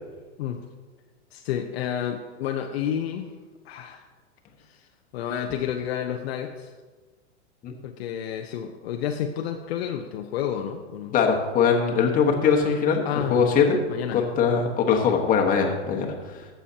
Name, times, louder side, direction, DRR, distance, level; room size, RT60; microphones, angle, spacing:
voice 1, 1.3-3.3 3.6-4.1 4.7-4.9 5.1-6.7 7.8-11.2 13.0-13.5 13.9-14.2 15.1-15.2, left 9 dB, 55° left, 4 dB, 0.8 m, -30 dB
voice 2, 11.1-13.0 13.3-13.8 14.1-16.5, left 6 dB, 20° left, 1 dB, 1.3 m, -21 dB
15.0 x 7.0 x 2.9 m, 1.3 s
hypercardioid pair, 130°, 37 cm